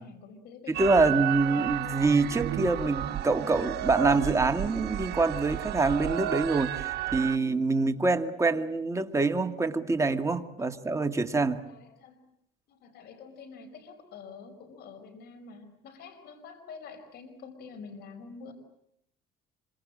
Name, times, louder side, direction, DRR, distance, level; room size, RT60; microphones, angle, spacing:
voice 1, 0.0-1.0 10.6-10.8 11.6-12.2 12.7-18.5, left 5 dB, 75° left, 5.0 m, -47 dB
sound 1, 0.7-7.4, right 13 dB, 70° right, 1.1 m, -32 dB
voice 2, 0.8-11.6, right 3 dB, 15° right, 2.0 m, -25 dB
27.0 x 25.0 x 7.6 m
cardioid pair, 110°, 17 cm